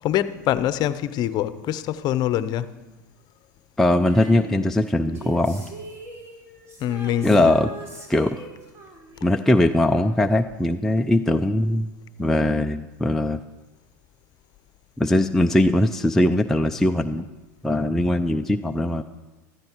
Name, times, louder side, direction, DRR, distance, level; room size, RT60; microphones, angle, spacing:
voice 1, 0.0-2.7 6.8-7.5, left 12 dB, 45° left, 0.8 m, -24 dB
voice 2, 3.8-5.7 7.2-7.7 8.1-8.4 9.2-11.9 12.2-13.4 15.0-17.3 17.6-19.0, left 1 dB, 5° left, 0.5 m, -20 dB
Female singing, 4.0-10.7 10.9-11.0, right 2 dB, 25° right, 4.1 m, -42 dB
15.0 x 13.5 x 4.6 m
hypercardioid pair, 100°, 10 cm